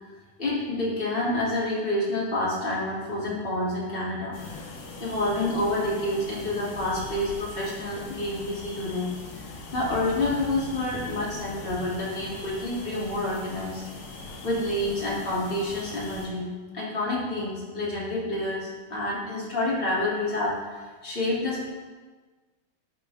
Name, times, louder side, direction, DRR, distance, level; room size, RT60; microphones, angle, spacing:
voice 1, 0.4-4.6 5.0-9.1 9.3-9.4 9.7-13.8 14.4-21.7, left 1 dB, 15° left, -7 dB, 2.3 m, -28 dB
sound 1, 4.3-16.3, left 3 dB, 60° left, 2.9 m, -41 dB
11.5 x 9.4 x 3.5 m, 1.4 s
omnidirectional pair, 4.4 m